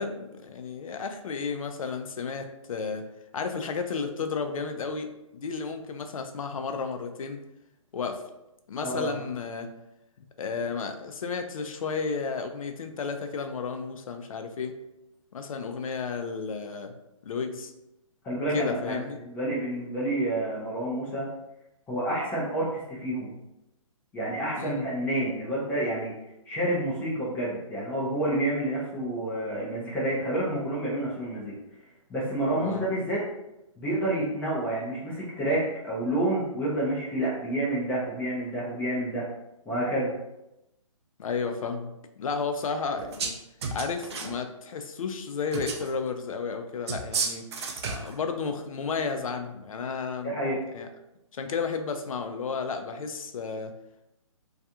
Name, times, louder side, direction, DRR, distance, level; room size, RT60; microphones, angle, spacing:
voice 1, 0.0-3.0 3.3-7.4 7.9-8.2 8.7-9.7 10.4-14.7 15.3-17.0 17.2-17.7 18.5-19.2 24.6-24.9 32.6-32.9 41.2-41.9 42.2-43.3 43.7-47.4 47.8-50.3 50.7-50.9 51.3-53.7, left 5 dB, 70° left, 6 dB, 0.5 m, -32 dB
voice 2, 8.8-9.1 18.2-21.3 21.9-23.3 24.1-26.1 26.5-31.5 32.1-33.3 33.8-39.2 39.7-40.1 50.2-50.6, right 1 dB, 10° left, -6 dB, 0.4 m, -29 dB
sound 1, 43.0-43.4 43.6-44.4 45.5-45.9 46.9-48.1, right 4 dB, 50° right, 0.5 m, -32 dB
2.4 x 2.3 x 2.7 m, 0.90 s
hypercardioid pair, 145°, 18 cm